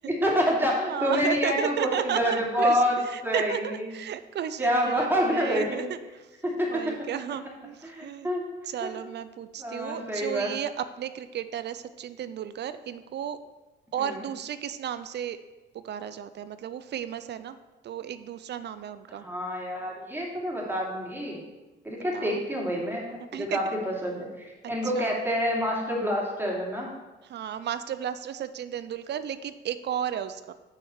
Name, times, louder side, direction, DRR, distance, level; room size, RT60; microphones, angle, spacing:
voice 1, 0.0-3.0 3.2-3.9 4.6-5.8 6.4-6.9 7.8-8.4 8.8-8.9 9.6-10.5 14.0-14.2 19.1-21.4 21.8-26.9, equal, 10° right, -3 dB, 2.7 m, -27 dB
voice 2, 0.9-6.2 6.7-8.3 8.7-13.4 13.9-15.4 15.7-17.6 17.8-19.2 21.9-22.4 23.3-23.8 24.9-25.2 27.3-30.5, right 9 dB, 60° right, 12 dB, 0.5 m, -33 dB
5.9 x 5.8 x 7.0 m, 1.2 s
cardioid pair, 90°, 20 cm